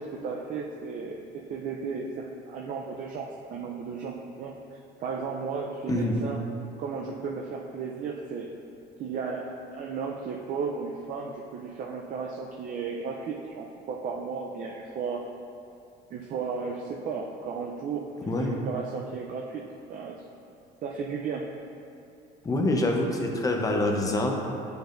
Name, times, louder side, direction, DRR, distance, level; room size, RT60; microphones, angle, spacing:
voice 1, 0.0-4.5 5.0-6.4 6.8-8.5 9.0-15.3 16.1-18.1 18.4-19.6 19.9-20.2 20.8-21.5, right 5 dB, 45° right, -1 dB, 0.5 m, -34 dB
voice 2, 22.4-24.3, left 2 dB, 20° left, 1 dB, 0.7 m, -25 dB
9.4 x 5.2 x 2.5 m, 2.6 s
cardioid pair, 130°, 18 cm